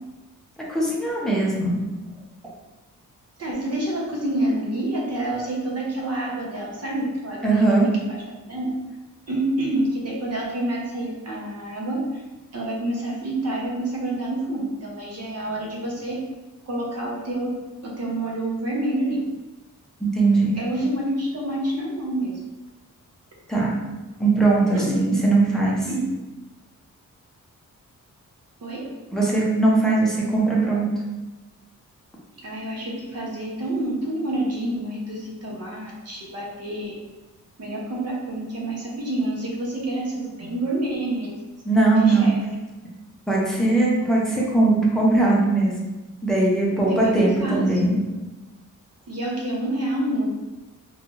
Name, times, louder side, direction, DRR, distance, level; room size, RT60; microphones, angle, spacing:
voice 1, 0.7-1.9 7.4-7.9 20.1-20.5 23.5-23.7 24.2-25.9 29.1-30.9 41.7-42.3 43.3-45.8 46.2-48.0, right 2 dB, ahead, -5 dB, 0.6 m, -20 dB
voice 2, 3.4-7.7 8.0-8.2 8.5-8.7 9.3-12.2 12.5-16.2 16.7-17.5 17.8-19.2 20.6-22.4 24.7-24.9 25.9-26.1 28.6-28.8 32.4-36.9 37.6-41.4 42.0-42.4 46.7-47.9 49.1-50.3, right 1 dB, 50° right, -3 dB, 0.7 m, -28 dB
2.7 x 2.3 x 3.0 m, 1.1 s
wide cardioid pair, 140°, 33 cm